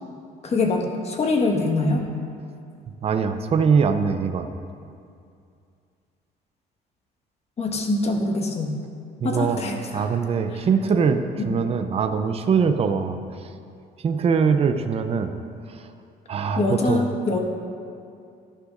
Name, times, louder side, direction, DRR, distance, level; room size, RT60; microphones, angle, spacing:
voice 1, 0.4-2.0 7.6-8.7 9.2-10.1 11.4-11.5 16.6-17.4, left 2 dB, 40° left, 2 dB, 1.5 m, -24 dB
voice 2, 3.0-4.5 9.2-9.6 9.9-13.2 14.0-15.3 15.7-15.9 16.3-17.0, right 6 dB, 35° right, 8 dB, 0.6 m, -22 dB
14.5 x 11.5 x 2.6 m, 2.4 s
cardioid pair, 110°, 17 cm